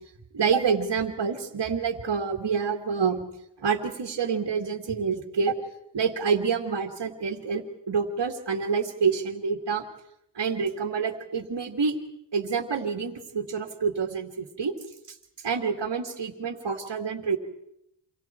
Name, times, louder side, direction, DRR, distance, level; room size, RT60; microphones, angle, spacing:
voice 1, 0.3-3.2 3.6-5.6 5.9-9.8 10.3-12.0 12.3-14.7 15.1-15.2 15.4-17.4, right 5 dB, 65° right, 3 dB, 2.4 m, -27 dB
28.5 x 25.5 x 4.5 m, 0.77 s
cardioid pair, 50°, 43 cm